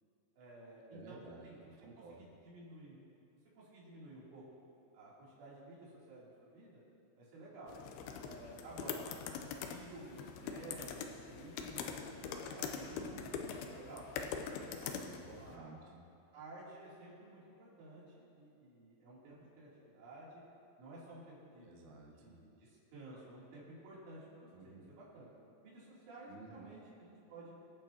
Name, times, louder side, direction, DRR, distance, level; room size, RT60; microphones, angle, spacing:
voice 1, 0.4-3.0 3.6-4.4 4.9-6.8 7.2-7.8 8.2-9.1 9.7-13.1 13.7-14.0 14.5-15.7 16.3-20.4 20.8-21.7 22.2-25.3 25.6-27.6, right 2 dB, 85° right, -7 dB, 5.7 m, -53 dB
voice 2, 0.9-1.5 1.8-2.2 8.1-8.2 13.0-13.5 14.7-16.0 21.6-22.4 24.5-24.9 26.3-26.8, right 4 dB, 70° right, -1 dB, 1.8 m, -54 dB
sound 1, 7.7-15.6, left 6 dB, 85° left, 2.2 m, -43 dB
24.0 x 8.9 x 2.9 m, 2.6 s
omnidirectional pair, 5.4 m